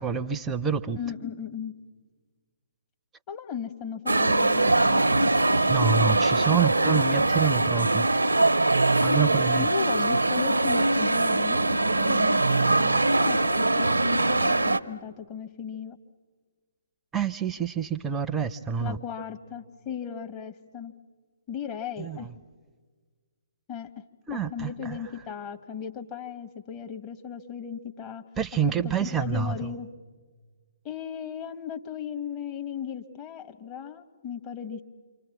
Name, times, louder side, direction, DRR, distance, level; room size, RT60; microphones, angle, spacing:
voice 1, 0.0-1.0 5.7-8.1 9.0-9.7 17.1-19.0 22.0-22.3 24.3-25.0 28.4-29.7, right 7 dB, 10° right, 12 dB, 0.7 m, -27 dB
voice 2, 0.9-1.7 3.3-5.0 9.5-16.0 18.8-20.9 21.5-22.3 23.7-24.0 24.3-28.2 28.8-29.9 30.8-34.8, left 8 dB, 25° left, 6 dB, 1.3 m, -36 dB
sound 1, 4.1-14.8, right 2 dB, 80° right, 0.7 m, -22 dB
28.0 x 25.0 x 7.2 m, 1.5 s
figure-of-eight pair, 130°, 0 cm